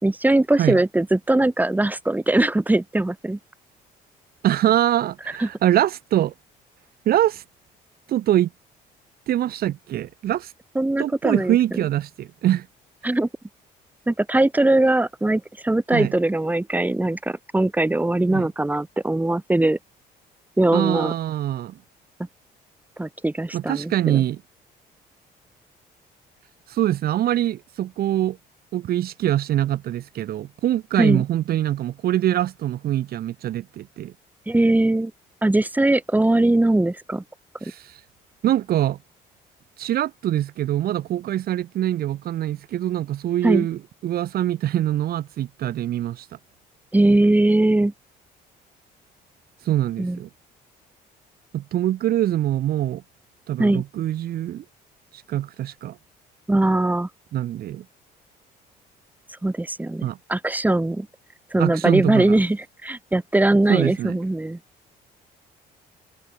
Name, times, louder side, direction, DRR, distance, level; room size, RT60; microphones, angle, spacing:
voice 1, 0.0-3.4 5.4-5.5 10.7-11.6 13.0-13.3 14.1-19.8 20.6-21.1 23.0-24.2 31.0-31.2 34.5-35.1 35.4-37.2 43.4-43.7 46.9-47.9 50.0-50.2 53.6-53.8 56.5-57.1 59.4-60.0 60.3-61.1 61.5-64.6, right 2 dB, 10° right, 5.0 m, -20 dB
voice 2, 4.4-6.3 7.1-7.4 8.1-8.5 9.3-10.5 11.0-12.7 15.9-16.1 18.3-18.5 20.7-21.8 23.5-24.4 26.7-28.4 28.7-34.1 37.6-38.0 38.4-39.0 39.8-46.3 49.7-50.3 51.5-53.0 53.5-54.6 55.3-56.0 57.3-57.8 60.0-60.2 61.6-62.4 63.7-64.2, right 12 dB, 65° right, 3.8 m, -24 dB
cardioid pair, 110°, 17 cm